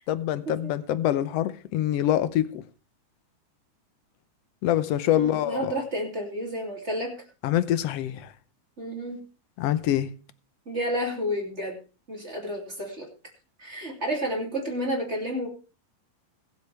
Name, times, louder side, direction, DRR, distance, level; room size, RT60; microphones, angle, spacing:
voice 1, 0.1-2.6 4.6-5.8 7.4-8.3 9.6-10.1, left 12 dB, 75° left, 1.5 m, -25 dB
voice 2, 5.1-7.2 8.8-9.2 10.7-11.8 12.1-13.1 13.6-15.5, equal, 20° right, 2.6 m, -31 dB
22.0 x 8.3 x 3.3 m
omnidirectional pair, 3.6 m